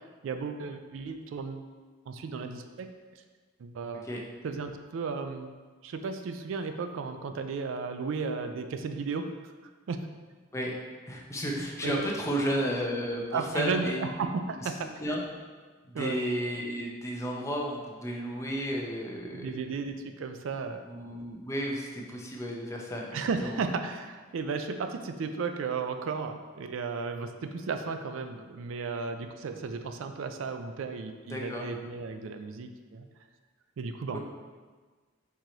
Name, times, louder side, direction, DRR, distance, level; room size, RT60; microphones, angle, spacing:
voice 1, 0.2-1.7 2.1-2.9 3.1-3.2 3.6-4.1 4.4-5.5 5.8-9.3 9.9-10.1 11.8-12.1 13.3-14.9 15.9-16.2 19.3-20.8 23.1-33.1 33.8-34.2, right 4 dB, 80° right, 7 dB, 0.4 m, -34 dB
voice 2, 11.1-13.2 13.5-14.0 14.4-14.7 15.0-15.2 15.8-19.5 20.9-23.6 31.3-31.7 34.1-34.2, equal, 15° left, -1 dB, 0.6 m, -33 dB
4.6 x 2.9 x 3.8 m, 1.4 s
head